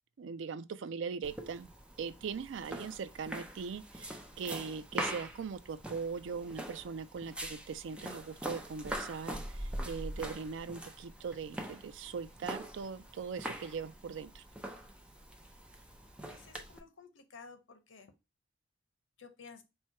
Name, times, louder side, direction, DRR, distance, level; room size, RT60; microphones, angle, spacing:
voice 1, 0.2-1.7 2.0-14.4, right 5 dB, 70° right, 0.4 m, -40 dB
sound 1, 1.2-16.8, right 1 dB, 5° right, 0.5 m, -43 dB
voice 2, 16.2-18.1 19.2-19.6, left 5 dB, 85° left, 0.7 m, -53 dB
4.3 x 2.2 x 4.5 m
head